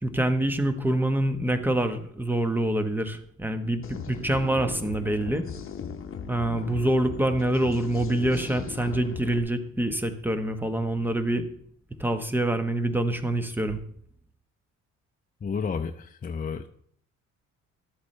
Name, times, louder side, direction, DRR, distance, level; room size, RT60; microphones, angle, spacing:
voice 1, 0.0-5.4 6.3-11.5 12.0-13.8, right 1 dB, 5° right, 8 dB, 1.1 m, -26 dB
sound 1, 3.8-9.4, left 6 dB, 45° left, 1.0 m, -38 dB
voice 2, 15.4-16.7, left 6 dB, 30° left, 7 dB, 0.6 m, -31 dB
12.5 x 8.1 x 3.3 m, 0.63 s
cardioid pair, 90°, 30 cm